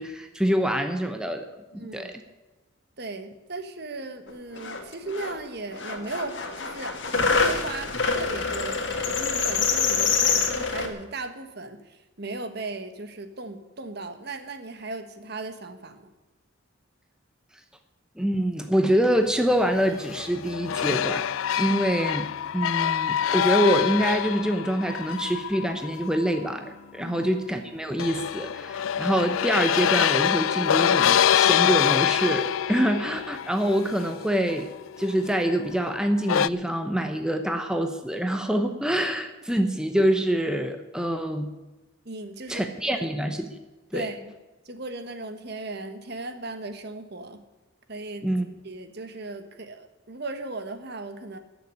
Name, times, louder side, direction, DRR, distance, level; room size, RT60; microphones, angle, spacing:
voice 1, 0.0-1.5 1.9-2.2 18.2-21.3 21.6-34.7 35.0-41.5 42.5-43.5 43.9-44.1 48.2-48.5, equal, 5° right, 6 dB, 0.8 m, -25 dB
voice 2, 1.7-2.1 3.0-16.1 21.7-21.8 27.0-27.3 42.0-43.1 43.9-44.3 44.6-47.4 47.9-48.3 48.6-51.4, right 2 dB, 55° right, 8 dB, 1.4 m, -37 dB
sound 1, 4.3-4.4 4.6-5.4 5.7-10.9, left 5 dB, 65° left, 2.0 m, -26 dB
sound 2, 19.8-26.5 28.0-35.6 36.2-36.5, left 9 dB, 85° left, 0.4 m, -25 dB
14.5 x 7.0 x 9.8 m, 1.1 s
head